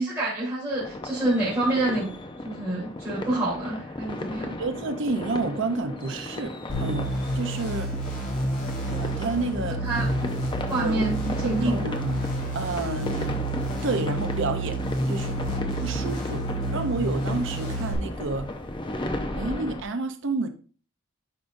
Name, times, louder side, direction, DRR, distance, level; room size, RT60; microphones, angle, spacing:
voice 1, 0.0-2.1 2.4-4.5 9.8-10.3 10.7-11.9, right 2 dB, 10° right, 3.2 m, -27 dB
sound 1, 0.7-19.8, left 1 dB, 20° left, 0.7 m, -35 dB
voice 2, 4.6-6.5 6.8-7.9 8.9-9.8 10.7-11.1 11.4-12.3 12.5-13.4 13.8-14.8 15.1-15.4 15.8-16.4 16.7-18.5 19.4-20.5, right 3 dB, 60° right, 0.7 m, -29 dB
sound 2, 6.7-17.9, right 1 dB, 40° left, 2.8 m, -29 dB
11.0 x 5.1 x 2.6 m
head